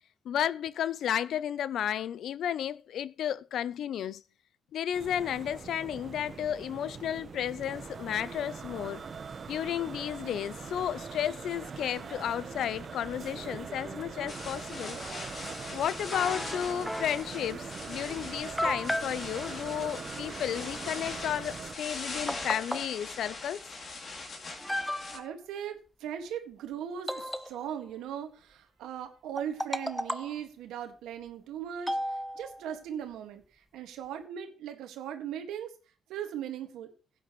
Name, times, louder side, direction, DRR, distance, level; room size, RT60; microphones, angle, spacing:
voice 1, 0.3-4.2 4.7-9.0 9.5-15.0 15.7-23.6, left 10 dB, 70° left, 0.4 m, -33 dB
sound 1, 4.9-21.8, right 5 dB, 45° right, 0.9 m, -42 dB
sound 2, 14.3-25.2, left 3 dB, 50° left, 2.7 m, -41 dB
sound 3, 16.1-17.3 18.0-18.1 18.6-19.2 21.7-21.8 22.3-22.9 23.9-24.0 24.6-25.3 27.1-27.9 29.4-30.4 31.9-32.7, equal, 5° left, 0.7 m, -34 dB
voice 2, 25.1-35.7 36.1-36.9, right 9 dB, 90° right, 1.8 m, -39 dB
16.0 x 9.2 x 3.1 m
cardioid pair, 90°, 0 cm